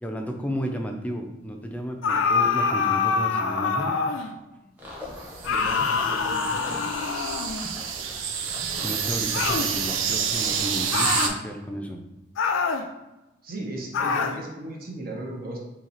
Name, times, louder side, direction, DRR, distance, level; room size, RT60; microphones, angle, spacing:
voice 1, 0.0-3.9 4.6-4.7 8.8-12.0, equal, 10° left, 3 dB, 0.4 m, -33 dB
sound 1, 2.0-4.3 5.4-7.7 9.3-9.7 10.9-11.4 12.4-12.9 13.9-14.4, left 5 dB, 80° left, 0.4 m, -25 dB
sound 2, 4.8-10.8, left 1 dB, 10° right, 0.8 m, -42 dB
sound 3, 5.2-11.3, right 7 dB, 90° right, 0.4 m, -29 dB
voice 2, 5.4-7.1 13.4-15.6, right 1 dB, 50° right, -1 dB, 0.7 m, -36 dB
2.9 x 2.8 x 3.9 m, 1.0 s
head